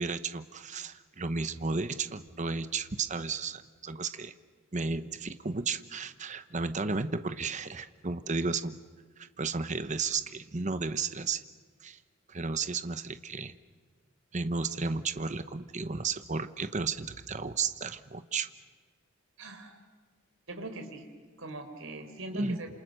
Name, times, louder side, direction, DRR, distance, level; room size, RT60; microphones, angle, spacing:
voice 1, 0.0-4.3 4.7-8.8 9.2-11.4 11.8-12.0 12.3-13.5 14.3-18.5 22.3-22.6, right 4 dB, 35° right, 11 dB, 0.9 m, -33 dB
voice 2, 19.4-19.8 20.5-21.0 21.4-22.7, right 2 dB, 65° right, 6 dB, 3.9 m, -41 dB
28.0 x 27.5 x 6.6 m, 1.5 s
head